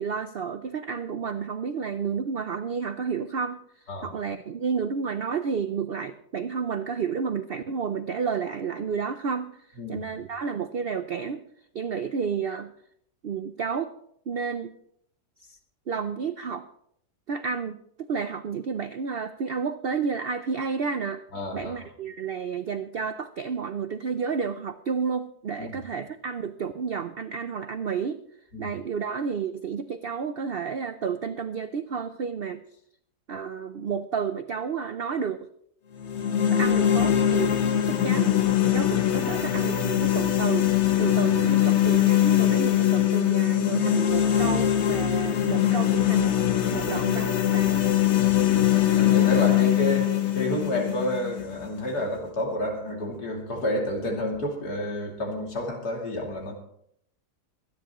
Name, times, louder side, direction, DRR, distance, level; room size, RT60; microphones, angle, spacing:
voice 1, 0.0-3.6 4.0-11.4 11.7-12.7 13.2-13.9 14.3-14.7 15.4-15.5 15.9-16.7 17.3-17.8 18.1-21.2 21.5-28.2 28.6-32.6 33.3-35.5 36.5-37.6 37.9-38.3 38.7-40.7 41.0-46.4 46.7-47.9, right 6 dB, 75° right, 10 dB, 0.5 m, -31 dB
voice 2, 9.8-10.1 21.3-21.8 25.6-25.8 28.5-28.7 48.2-56.5, left 1 dB, 65° left, 0 dB, 3.3 m, -30 dB
sound 1, 36.0-52.0, left 11 dB, 50° left, 1.1 m, -22 dB
24.0 x 10.0 x 3.0 m, 0.69 s
omnidirectional pair, 1.8 m